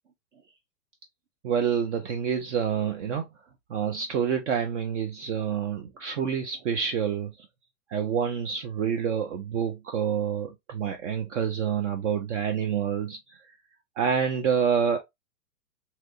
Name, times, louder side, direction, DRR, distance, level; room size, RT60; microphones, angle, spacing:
voice 1, 1.4-3.3 3.7-7.5 7.9-13.4 14.0-15.0, right 7 dB, 50° right, 0.6 m, -27 dB
3.0 x 2.9 x 2.5 m
hypercardioid pair, 140°, 48 cm